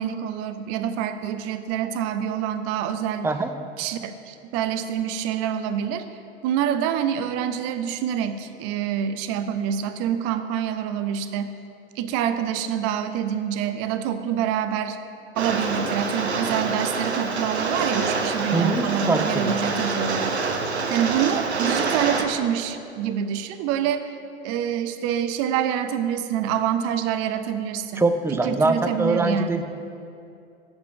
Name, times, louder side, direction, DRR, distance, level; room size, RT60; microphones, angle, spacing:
voice 1, 0.0-3.3 3.8-6.0 6.4-11.5 12.0-15.0 15.4-20.4 20.9-24.1 24.4-29.6, right 9 dB, 50° right, 10 dB, 0.7 m, -26 dB
Rain, 15.4-22.2, right 4 dB, 85° right, 0.7 m, -26 dB
voice 2, 18.5-19.5 28.0-29.6, right 3 dB, 10° right, 8 dB, 0.4 m, -23 dB
6.8 x 6.2 x 7.2 m, 2.5 s
figure-of-eight pair, 75°, 32 cm